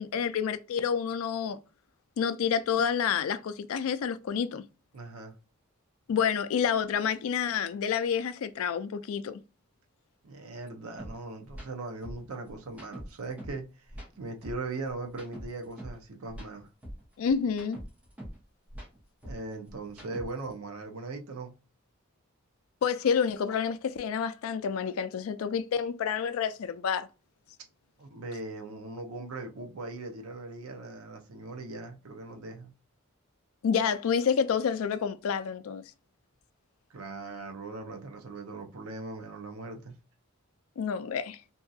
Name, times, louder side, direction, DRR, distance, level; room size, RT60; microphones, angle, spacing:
voice 1, 0.0-1.6 2.2-4.6 6.1-9.4 17.2-17.8 22.8-27.1 33.6-35.8 40.8-41.4, left 7 dB, 70° left, 0.3 m, -29 dB
voice 2, 4.9-5.4 10.2-13.9 14.2-16.7 19.2-21.5 28.0-32.7 36.9-39.9, right 3 dB, 85° right, 0.6 m, -39 dB
sound 1, 11.0-11.1 11.5-11.7 12.0-13.6 13.9-16.0 16.3-18.4 18.7-20.5, equal, 5° right, 0.7 m, -43 dB
2.6 x 2.3 x 2.5 m
head